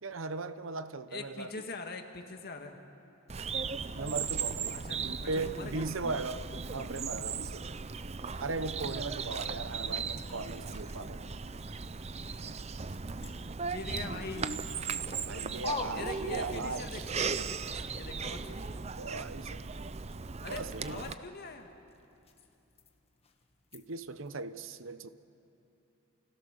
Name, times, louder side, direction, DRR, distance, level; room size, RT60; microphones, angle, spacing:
voice 1, 0.0-1.5 3.9-6.4 6.7-7.7 8.4-11.2 15.2-17.1 19.0-19.7 20.5-21.1 23.7-25.1, right 3 dB, 65° right, 12 dB, 0.9 m, -38 dB
voice 2, 1.1-2.8 4.7-5.9 13.6-14.5 15.9-17.6 17.9-18.6 20.4-21.7, left 3 dB, 45° left, 4 dB, 1.9 m, -43 dB
Bird vocalization bird call bird song, 3.3-21.1, right 5 dB, 30° right, 0.6 m, -37 dB
sound 1, 9.7-16.9 17.2-24.4, left 3 dB, 30° left, 1.6 m, -49 dB
29.5 x 28.5 x 6.7 m, 2.8 s
head